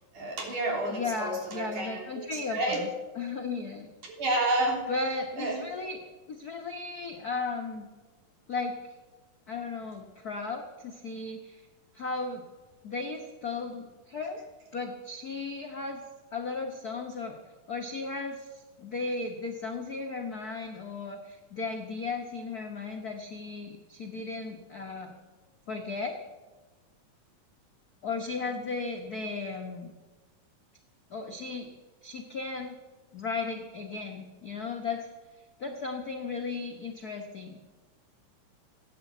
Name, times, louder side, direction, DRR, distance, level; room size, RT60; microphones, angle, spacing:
voice 1, 0.1-2.8 4.1-4.8 5.4-5.6, right 2 dB, 70° right, 0 dB, 4.8 m, -30 dB
voice 2, 0.9-2.9 3.1-3.9 4.9-6.0 6.3-7.9 8.5-8.8 9.5-11.6 11.9-12.4 12.8-14.4 14.7-16.0 16.3-17.4 17.7-25.1 25.7-26.1 28.0-29.9 31.1-31.7 32.0-32.8 33.1-35.1 35.6-37.6, left 4 dB, 70° left, 2 dB, 0.8 m, -35 dB
17.0 x 9.6 x 8.1 m, 1.2 s
omnidirectional pair, 3.7 m